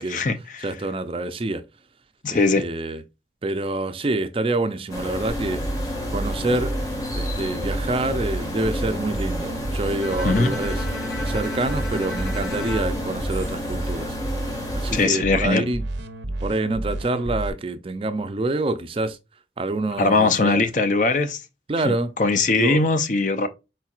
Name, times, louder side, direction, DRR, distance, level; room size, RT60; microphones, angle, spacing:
voice 1, 0.0-0.7 2.2-2.6 10.2-10.5 14.9-15.6 20.0-21.4 21.8-23.5, left 3 dB, 45° left, 0.5 m, -21 dB
voice 2, 0.6-1.6 2.3-3.0 3.4-5.6 6.1-6.7 7.2-10.8 11.2-14.2 14.7-15.8 16.4-19.2 19.6-20.6 21.7-22.1 22.5-22.9, right 2 dB, 30° right, 0.4 m, -27 dB
sound 1, 4.9-15.1, left 1 dB, 20° left, 1.1 m, -31 dB
sound 2, 5.3-17.5, right 2 dB, 85° right, 0.7 m, -30 dB
Bowed string instrument, 10.0-14.1, left 3 dB, 80° left, 1.1 m, -36 dB
4.5 x 4.3 x 2.4 m
head